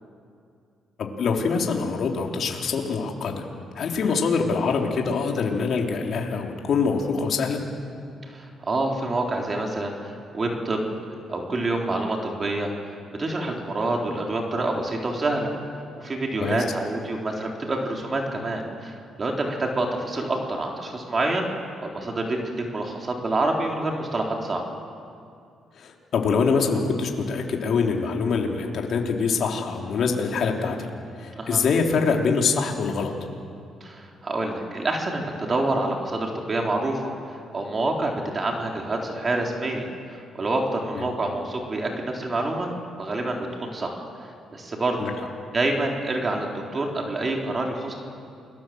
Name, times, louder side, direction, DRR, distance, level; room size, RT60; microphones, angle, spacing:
voice 1, 1.0-3.4 3.7-7.6 16.4-16.6 25.8-30.9 31.2-33.1 40.9-41.1 45.0-45.1, left 5 dB, 60° left, 1 dB, 3.2 m, -24 dB
voice 2, 8.3-10.8 11.3-15.5 16.0-21.5 21.8-22.4 22.7-24.6 31.4-31.6 33.8-37.0 37.3-42.7 43.0-45.0 45.5-47.9, right 2 dB, 35° right, 1 dB, 3.9 m, -27 dB
28.5 x 21.0 x 7.8 m, 2.4 s
cardioid pair, 90°, 0 cm